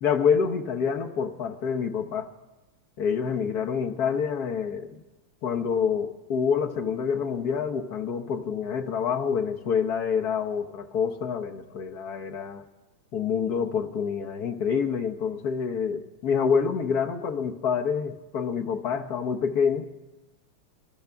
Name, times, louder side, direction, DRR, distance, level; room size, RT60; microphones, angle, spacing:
voice 1, 0.0-2.3 3.0-4.9 5.4-12.6 13.1-19.9, left 6 dB, 55° left, 1.2 m, -27 dB
29.0 x 13.0 x 3.5 m
omnidirectional pair, 2.3 m